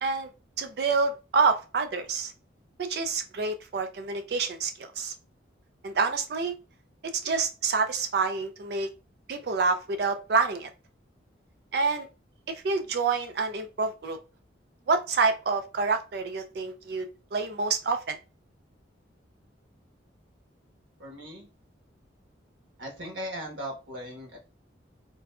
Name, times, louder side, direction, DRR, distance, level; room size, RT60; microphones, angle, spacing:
voice 1, 0.6-2.3 2.9-5.1 5.8-6.5 7.2-8.9 9.3-10.7 11.7-12.1 12.5-14.2 14.9-18.2, right 4 dB, 55° right, 8 dB, 0.4 m, -27 dB
voice 2, 21.0-21.5 22.8-24.4, equal, 90° right, 1 dB, 1.3 m, -38 dB
3.8 x 2.3 x 2.3 m, 0.31 s
head